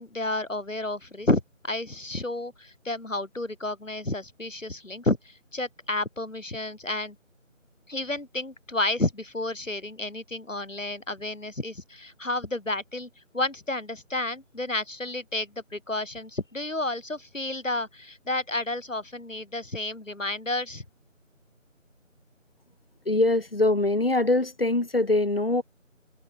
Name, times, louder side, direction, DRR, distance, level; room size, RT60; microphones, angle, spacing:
voice 1, 0.0-7.2 7.9-20.9, left 2 dB, 70° left, 3.5 m, -31 dB
voice 2, 23.0-25.6, left 2 dB, 45° left, 1.3 m, -23 dB
figure-of-eight pair, 170°, 39 cm